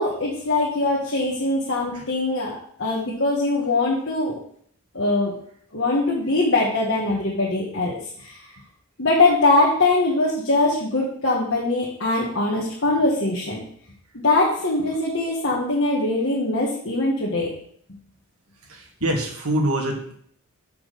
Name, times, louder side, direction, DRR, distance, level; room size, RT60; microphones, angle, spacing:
voice 1, 0.0-4.4 4.9-5.3 5.7-8.4 9.0-13.6 14.1-17.5, left 2 dB, 55° left, -5 dB, 1.6 m, -22 dB
voice 2, 18.7-20.2, right 1 dB, 85° right, 0 dB, 2.1 m, -25 dB
6.2 x 5.7 x 6.8 m, 0.62 s
head